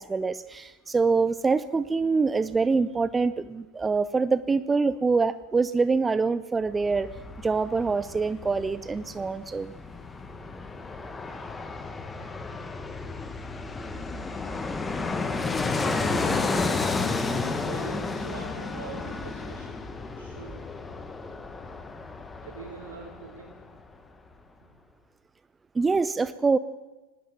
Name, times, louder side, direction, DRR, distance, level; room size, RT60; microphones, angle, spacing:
voice 1, 0.0-7.1 7.4-9.7 25.7-26.6, right 4 dB, 15° right, 15 dB, 0.6 m, -25 dB
Fixed-wing aircraft airplane, 6.7-23.6 23.9-24.0, left 3 dB, 15° left, 1.7 m, -32 dB
voice 2, 16.0-16.8 17.6-19.8 20.1-20.7 22.4-23.6, right 5 dB, 60° right, -2 dB, 4.8 m, -43 dB
19.5 x 17.0 x 8.7 m, 1.2 s
figure-of-eight pair, 90°, 0 cm